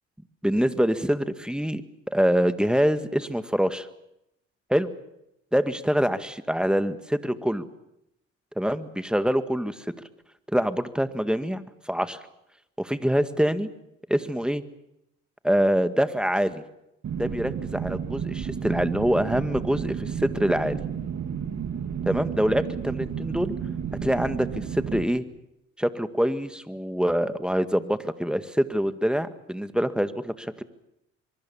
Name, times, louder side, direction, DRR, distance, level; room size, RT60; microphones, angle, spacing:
voice 1, 0.4-1.8 2.1-3.9 4.7-4.9 5.5-7.7 8.6-9.8 10.5-12.2 12.8-13.7 14.1-14.6 15.4-16.6 17.2-20.8 22.0-23.5 24.0-25.2 25.8-30.6, equal, ahead, 11 dB, 1.8 m, -25 dB
sound 1, 17.0-25.0, right 7 dB, 50° right, 2.9 m, -32 dB
24.0 x 23.0 x 7.2 m, 0.85 s
hypercardioid pair, 55°, 34 cm